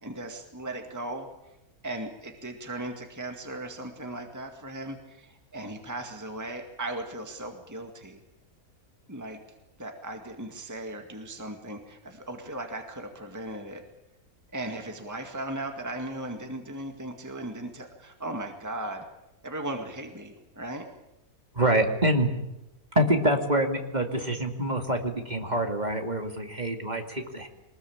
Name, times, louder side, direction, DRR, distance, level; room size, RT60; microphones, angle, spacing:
voice 1, 0.0-1.3 1.8-8.2 9.1-9.4 9.8-13.8 14.5-19.1 19.4-20.9, right 1 dB, 10° right, 4 dB, 2.0 m, -37 dB
voice 2, 21.5-22.3 23.0-27.5, right 1 dB, 30° right, 4 dB, 2.5 m, -26 dB
23.5 x 20.0 x 8.7 m, 0.91 s
omnidirectional pair, 1.6 m